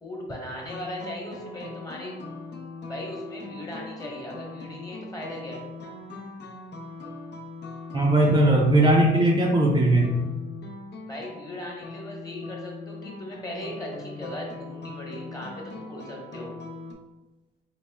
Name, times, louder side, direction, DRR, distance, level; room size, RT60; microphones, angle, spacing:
voice 1, 0.0-2.1 2.9-5.6 11.1-16.5, left 1 dB, 20° left, -2 dB, 1.1 m, -38 dB
sound 1, 0.6-16.9, left 3 dB, 60° left, 0.6 m, -41 dB
voice 2, 7.9-10.1, right 1 dB, 20° right, -3 dB, 0.5 m, -19 dB
4.1 x 2.1 x 3.3 m, 1.1 s
cardioid pair, 90°, 20 cm